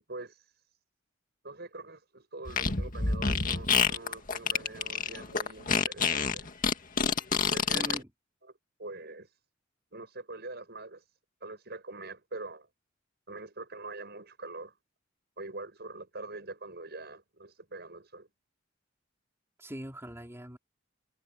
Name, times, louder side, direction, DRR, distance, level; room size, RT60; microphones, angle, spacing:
voice 1, 1.4-6.5 7.5-8.0 8.8-9.3 9.9-11.0 11.4-12.7 13.3-14.8 15.4-18.3, right 2 dB, 55° right, 7.5 m, -44 dB
Fart, 2.5-8.0, left 5 dB, 45° left, 2.0 m, -27 dB
voice 2, 7.7-8.1 19.6-20.6, equal, 15° right, 4.3 m, -41 dB
head